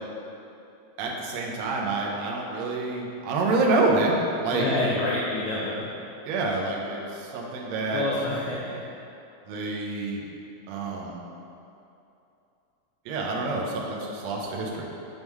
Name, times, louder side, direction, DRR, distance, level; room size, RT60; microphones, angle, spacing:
voice 1, 1.0-4.7 6.3-8.0 9.5-10.2 10.7-11.2 13.1-14.8, right 3 dB, 85° right, -2 dB, 1.5 m, -27 dB
voice 2, 4.5-5.9 7.9-8.8, left 2 dB, 85° left, -5 dB, 1.6 m, -27 dB
6.7 x 5.3 x 3.1 m, 2.8 s
omnidirectional pair, 4.0 m